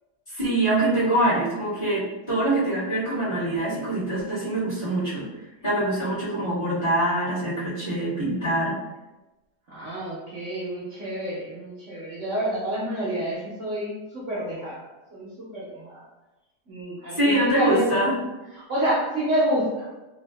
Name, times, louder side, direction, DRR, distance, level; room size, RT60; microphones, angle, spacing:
voice 1, 0.3-5.3 5.6-8.8 17.1-18.2, right 1 dB, 30° left, -11 dB, 1.5 m, -24 dB
voice 2, 9.7-16.0 16.7-17.9 18.5-19.9, right 1 dB, 55° right, -8 dB, 0.9 m, -29 dB
3.5 x 2.4 x 2.3 m, 1.1 s
omnidirectional pair, 1.8 m